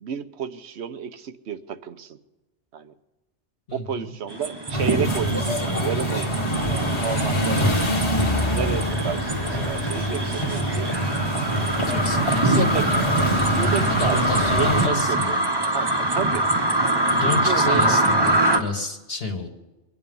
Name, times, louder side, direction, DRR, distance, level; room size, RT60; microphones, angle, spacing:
voice 1, 0.0-2.2 2.7-2.9 3.7-7.6 8.4-10.9 12.2-12.9 13.5-15.4 15.7-16.4 17.2-18.3, right 7 dB, 70° right, 11 dB, 1.1 m, -31 dB
voice 2, 3.7-4.1 11.9-12.7 13.8-15.5 17.1-19.5, left 3 dB, 55° left, 1 dB, 1.9 m, -29 dB
sound 1, 4.3-18.6, right 1 dB, 20° right, 1.0 m, -24 dB
sound 2, 4.7-14.9, equal, 25° left, 1.5 m, -24 dB
24.0 x 9.9 x 5.4 m, 1.1 s
omnidirectional pair, 1.2 m